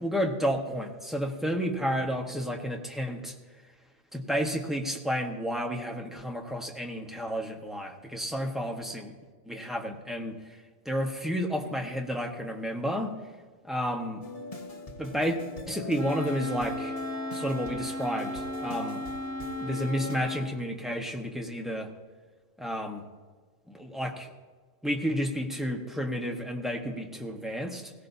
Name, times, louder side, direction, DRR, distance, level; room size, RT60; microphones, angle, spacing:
voice 1, 0.0-3.3 4.1-9.1 9.4-10.4 10.8-13.2 13.6-14.2 15.0-15.4 15.7-16.9 17.3-19.0 19.6-21.9 22.6-23.0 23.7-24.3 24.8-27.9, equal, ahead, 1 dB, 1.2 m, -31 dB
sound 1, 14.2-20.2, left 3 dB, 30° left, 1.4 m, -41 dB
Wind instrument woodwind instrument, 16.0-20.5, left 1 dB, 60° right, 1.2 m, -36 dB
21.0 x 16.5 x 2.8 m, 1.4 s
omnidirectional pair, 1.2 m